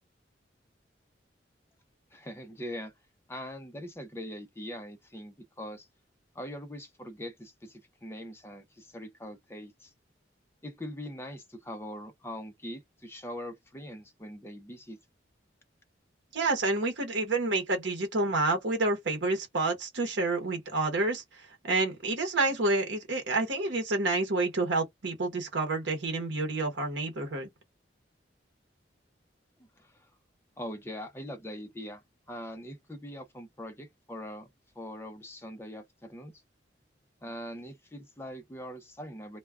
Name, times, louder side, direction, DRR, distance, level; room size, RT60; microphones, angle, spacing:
voice 1, 2.1-2.9 3.3-5.9 6.3-9.9 10.6-15.0 29.8-30.1 30.6-34.5 34.8-36.3 37.2-39.4, equal, 15° left, 0.5 m, -42 dB
voice 2, 16.3-27.5, right 2 dB, 75° right, 0.9 m, -29 dB
2.2 x 2.2 x 3.4 m
head